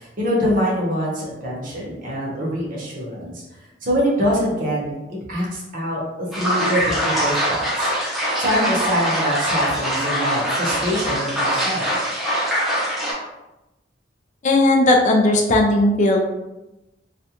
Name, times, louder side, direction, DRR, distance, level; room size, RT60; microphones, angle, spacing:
voice 1, 0.0-3.4 3.8-5.0 5.3-7.9 8.4-11.9, equal, 50° right, -4 dB, 0.8 m, -24 dB
sound 1, 6.3-13.1, equal, ahead, 0.6 m, -23 dB
voice 2, 14.4-16.3, left 1 dB, 40° left, 1 dB, 0.3 m, -16 dB
2.4 x 2.2 x 2.8 m, 1.0 s
head